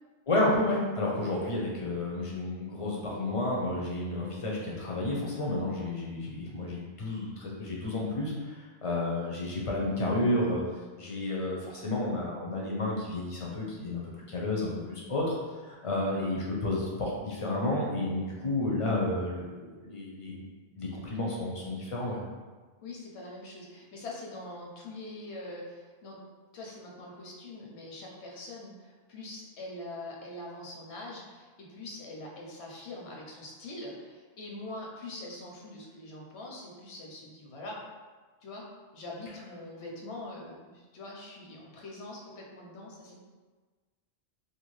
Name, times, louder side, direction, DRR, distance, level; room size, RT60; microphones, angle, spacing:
voice 1, 0.3-10.6 11.0-15.4 15.7-20.4 20.8-22.2, left 2 dB, 50° left, -3 dB, 0.4 m, -31 dB
voice 2, 22.8-26.2 26.5-37.8 38.4-38.7 38.9-43.2, left 2 dB, 85° left, -2 dB, 0.9 m, -43 dB
2.6 x 2.2 x 3.1 m, 1.4 s
omnidirectional pair, 1.1 m